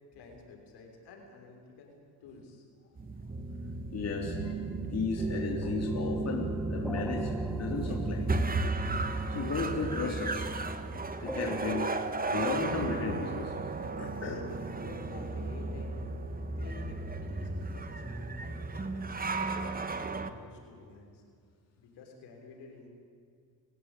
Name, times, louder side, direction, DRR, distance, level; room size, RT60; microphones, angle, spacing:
voice 1, 0.1-1.9 2.2-2.6 14.7-16.1 16.6-19.2 19.6-21.2 21.8-22.9, left 4 dB, 80° left, 2 dB, 6.4 m, -51 dB
sound 1, 3.0-20.3, right 3 dB, 20° right, 1.7 m, -34 dB
voice 2, 3.9-4.5 4.9-8.4 9.3-10.5 11.2-11.9 12.3-13.5 14.0-14.5, left 4 dB, 40° left, 0 dB, 3.6 m, -34 dB
sound 2, 5.9-9.2 11.3-13.0, equal, ahead, 1.8 m, -45 dB
29.5 x 16.5 x 9.3 m, 2.2 s
cardioid pair, 105°, 40 cm